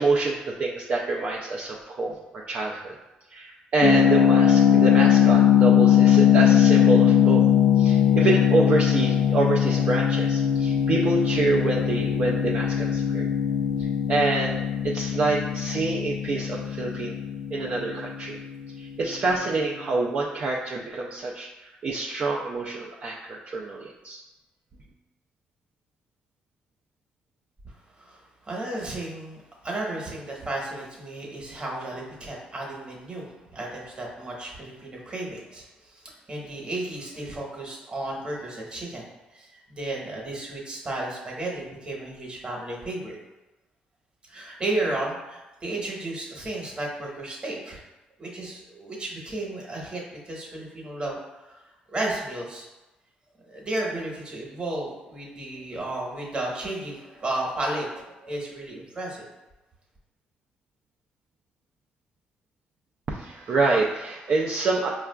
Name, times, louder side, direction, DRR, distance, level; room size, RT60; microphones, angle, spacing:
voice 1, 0.0-2.9 3.3-7.5 7.8-13.3 13.8-17.2 17.5-18.4 18.8-24.2 63.1-64.9, right 3 dB, 50° right, -2 dB, 0.4 m, -27 dB
sound 1, 3.8-18.6, left 9 dB, 70° left, 0.5 m, -20 dB
voice 2, 27.6-43.2 44.3-47.8 48.2-52.7 53.4-59.3, right 2 dB, 35° right, -2 dB, 1.0 m, -33 dB
4.7 x 2.3 x 2.2 m, 1.1 s
cardioid pair, 75°, 3 cm